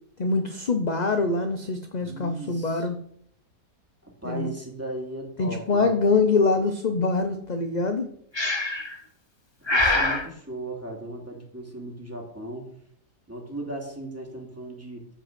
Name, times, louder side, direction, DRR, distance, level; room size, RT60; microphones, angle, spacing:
voice 1, 0.2-3.0 4.2-4.5 5.4-8.1, left 3 dB, 35° left, 6 dB, 0.7 m, -24 dB
voice 2, 2.0-2.9 4.0-6.0 9.6-12.7 13.3-15.1, right 1 dB, 10° right, 0 dB, 2.6 m, -37 dB
Breathing, 8.3-9.0 9.7-10.3, left 2 dB, 20° left, 1.0 m, -23 dB
14.0 x 5.4 x 6.2 m, 0.68 s
omnidirectional pair, 1.7 m